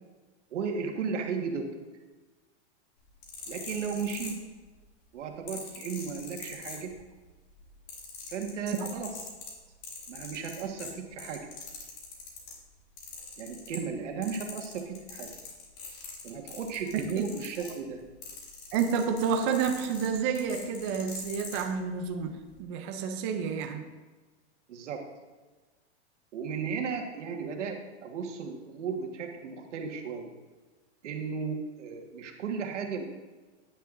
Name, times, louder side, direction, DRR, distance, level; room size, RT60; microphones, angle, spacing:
voice 1, 0.5-1.7 3.5-4.4 5.1-6.9 8.3-9.1 10.1-11.5 13.4-15.3 16.2-18.0 24.7-25.0 26.3-30.3 31.0-33.0, right 5 dB, 85° right, 3 dB, 1.6 m, -35 dB
sound 1, 3.0-4.8 5.5-7.2 7.5-12.6 13.0-14.0 14.2-21.6 22.4-22.5, left 5 dB, 45° left, 2.5 m, -43 dB
voice 2, 18.7-23.9, right 6 dB, 25° right, 4 dB, 0.4 m, -30 dB
10.0 x 9.2 x 2.6 m, 1.3 s
supercardioid pair, 160°, 35 cm